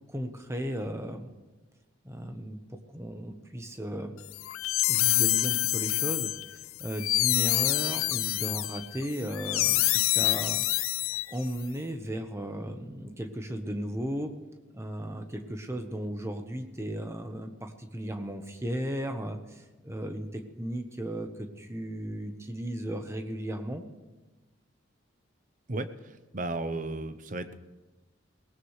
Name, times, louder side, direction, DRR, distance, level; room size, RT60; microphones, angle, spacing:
voice 1, 0.1-1.3 2.0-4.1 4.9-10.6 11.0-14.3 14.7-23.8, right 1 dB, 15° right, 5 dB, 1.1 m, -35 dB
sound 1, 4.3-11.6, left 17 dB, 85° left, 0.4 m, -27 dB
voice 2, 25.7-27.5, right 2 dB, 40° right, 11 dB, 0.8 m, -34 dB
24.0 x 18.0 x 3.3 m, 1.2 s
head